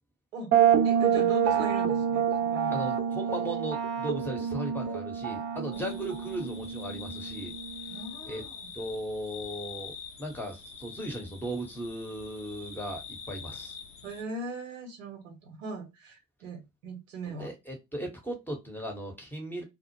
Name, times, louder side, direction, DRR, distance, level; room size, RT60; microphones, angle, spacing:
sound 1, 0.5-8.1, right 8 dB, 40° right, 0.6 m, -27 dB
voice 1, 0.8-2.3 2.5-2.8 7.9-8.6 14.0-17.5, right 3 dB, 75° right, 0.8 m, -40 dB
voice 2, 2.7-7.5 8.2-8.4 8.7-13.0 13.3-13.8 17.3-19.6, right 1 dB, 5° left, 0.8 m, -37 dB
sound 2, 5.7-14.2, left 6 dB, 80° left, 0.6 m, -45 dB
2.0 x 2.0 x 2.9 m
figure-of-eight pair, 45°, 39 cm